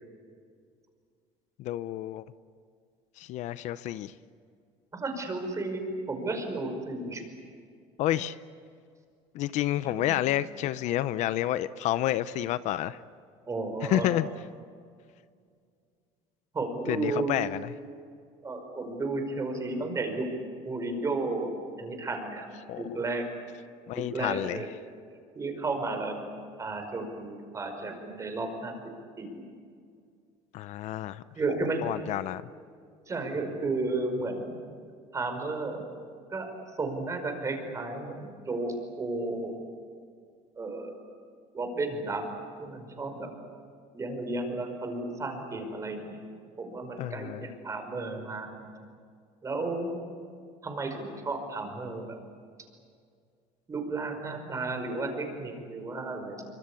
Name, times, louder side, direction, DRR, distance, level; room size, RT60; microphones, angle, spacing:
voice 1, 1.6-2.2 3.2-4.1 8.0-8.4 9.3-13.0 13.8-14.3 16.9-17.7 22.7-22.8 23.9-24.6 30.5-31.2 31.8-32.4 47.0-47.4, left 13 dB, 60° left, 15 dB, 0.7 m, -29 dB
voice 2, 4.9-7.2 13.5-14.1 16.5-17.3 18.4-20.3 20.6-21.5 21.8-22.5 22.8-23.3 23.9-24.7 25.4-26.2 26.6-28.7 29.2-29.4 31.4-31.8 33.1-34.6 35.1-35.8 36.3-36.5 36.8-39.5 40.6-41.0 41.5-42.2 42.6-43.3 43.9-46.2 46.6-48.7 49.4-50.0 50.6-52.2 53.7-56.5, right 3 dB, 25° right, 5 dB, 5.3 m, -33 dB
25.0 x 24.5 x 8.5 m, 2.2 s
cardioid pair, 125°, 14 cm